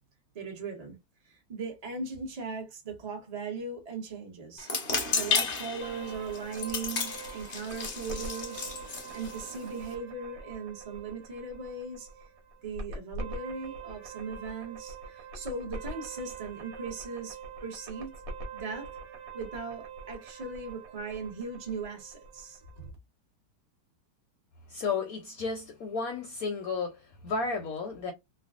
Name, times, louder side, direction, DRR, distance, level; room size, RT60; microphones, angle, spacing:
voice 1, 0.3-1.0 1.2-4.7 5.1-12.1 12.6-18.1 18.5-18.9 19.3-22.9, right 4 dB, 25° right, 0.9 m, -39 dB
sound 1, 4.6-9.9, left 5 dB, 50° left, 0.7 m, -33 dB
sound 2, 5.8-22.9, right 3 dB, 75° right, 1.6 m, -44 dB
voice 2, 24.7-28.1, left 4 dB, 65° left, 1.0 m, -33 dB
3.4 x 2.3 x 2.4 m
omnidirectional pair, 1.9 m